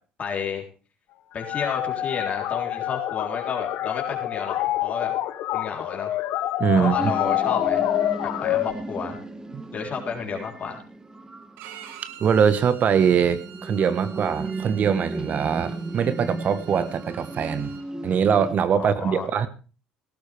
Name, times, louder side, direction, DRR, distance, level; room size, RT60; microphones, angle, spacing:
voice 1, 0.2-0.6 1.3-5.1 5.5-6.2 6.8-7.9 8.2-9.2 9.7-10.8 18.8-19.3, left 6 dB, 40° left, 1 dB, 3.7 m, -31 dB
sound 1, 1.4-8.7, left 13 dB, 65° left, 1.1 m, -27 dB
voice 2, 6.6-7.1 9.5-9.6 12.2-17.8 18.0-19.5, right 7 dB, 50° right, 13 dB, 1.3 m, -22 dB
sound 2, 7.0-18.6, right 2 dB, 15° right, 1.4 m, -35 dB
Bowed string instrument, 11.6-17.8, right 9 dB, 70° right, 1.8 m, -46 dB
17.0 x 13.5 x 3.5 m, 0.36 s
hypercardioid pair, 75°, 4 cm